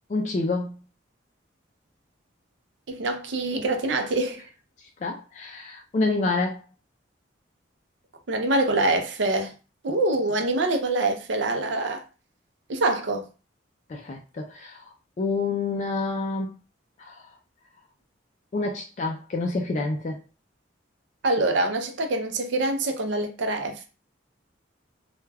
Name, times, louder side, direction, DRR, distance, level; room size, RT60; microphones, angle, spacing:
voice 1, 0.1-0.7 4.8-6.6 13.9-16.5 17.0-17.3 18.5-20.2, left 3 dB, 40° left, 0.3 m, -28 dB
voice 2, 2.9-4.4 8.3-9.5 9.8-12.0 12.7-13.3 21.2-23.8, right 2 dB, 70° right, 0.5 m, -25 dB
2.2 x 2.2 x 3.3 m
head